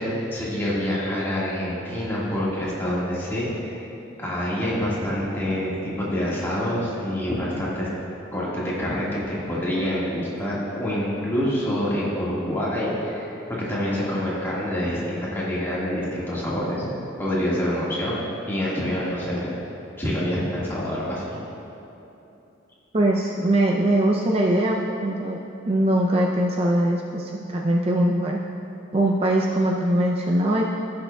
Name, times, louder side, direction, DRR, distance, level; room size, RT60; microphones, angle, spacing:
voice 1, 0.0-3.8 4.2-7.9 8.3-16.9 17.2-19.5 20.0-21.4, equal, 10° left, -8 dB, 1.6 m, -26 dB
voice 2, 22.9-25.4 25.7-28.4 28.9-30.6, right 1 dB, 30° right, -1 dB, 0.4 m, -21 dB
16.0 x 6.6 x 2.3 m, 2.9 s
head